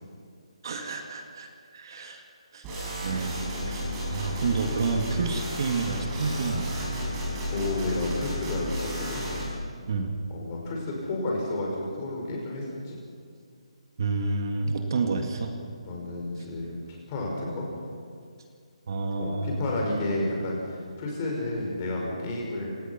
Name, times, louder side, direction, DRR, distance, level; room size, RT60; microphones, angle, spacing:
voice 1, 0.6-2.3 2.5-2.6 2.9-7.0 9.9-10.2 14.0-15.5 16.4-16.5 18.9-19.6, right 4 dB, 45° right, 5 dB, 2.0 m, -30 dB
sound 1, 2.6-9.5, left 1 dB, 15° right, 5.6 m, -32 dB
voice 2, 7.5-9.2 10.3-13.0 15.9-16.8 17.1-17.6 19.2-22.7, left 2 dB, 20° left, -2 dB, 5.5 m, -31 dB
28.0 x 18.0 x 5.9 m, 2.2 s
hypercardioid pair, 170°, 3 cm